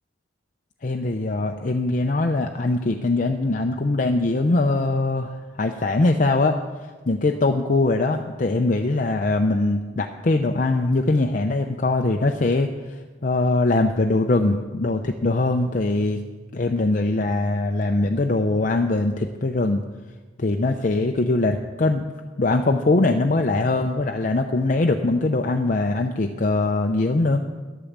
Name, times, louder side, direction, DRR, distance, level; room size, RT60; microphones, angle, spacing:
voice 1, 0.8-6.6 7.1-16.2 16.5-19.8 20.4-27.4, left 2 dB, 45° left, 4 dB, 0.6 m, -22 dB
11.5 x 8.6 x 7.3 m, 1.3 s
head